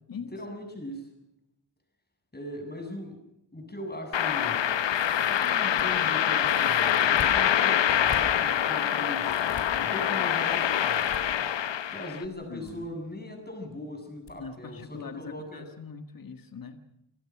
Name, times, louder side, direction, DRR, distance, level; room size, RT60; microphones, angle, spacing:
voice 1, 0.3-1.1 2.3-3.2 3.5-4.7 5.3-9.4 9.7-11.5 11.9-15.7, left 1 dB, 20° left, 3 dB, 7.7 m, -39 dB
sound 1, 4.1-12.2, left 9 dB, 70° left, 0.9 m, -25 dB
sound 2, 4.9-5.8 6.4-7.3 7.9-8.2 9.3-9.6 10.5-11.2 12.3-12.7 13.0-13.1 14.3-14.4 14.7-14.9, left 6 dB, 85° left, 4.6 m, -43 dB
voice 2, 12.5-12.9 14.4-16.8, left 5 dB, 45° left, 7 dB, 1.8 m, -42 dB
28.5 x 17.5 x 6.1 m, 0.85 s
wide cardioid pair, 90°, 46 cm